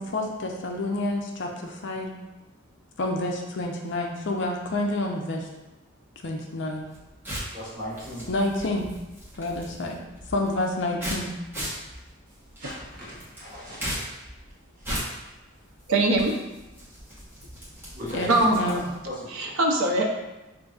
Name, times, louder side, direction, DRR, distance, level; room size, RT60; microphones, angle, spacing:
voice 1, 0.0-2.1 3.0-5.5 6.2-6.9 8.3-8.9 9.4-10.0 10.3-11.3 18.1-18.8, left 2 dB, 55° left, 1 dB, 0.5 m, -28 dB
sound 1, 6.8-19.1, equal, 10° right, 1.0 m, -38 dB
voice 2, 7.5-8.3 12.6-13.8 14.8-15.0 17.9-18.8 19.0-19.5, equal, 40° right, -9 dB, 1.2 m, -37 dB
voice 3, 15.9-16.4 18.3-18.8 19.3-20.0, right 2 dB, 75° right, 1 dB, 0.6 m, -22 dB
5.2 x 2.6 x 2.3 m, 1.0 s
head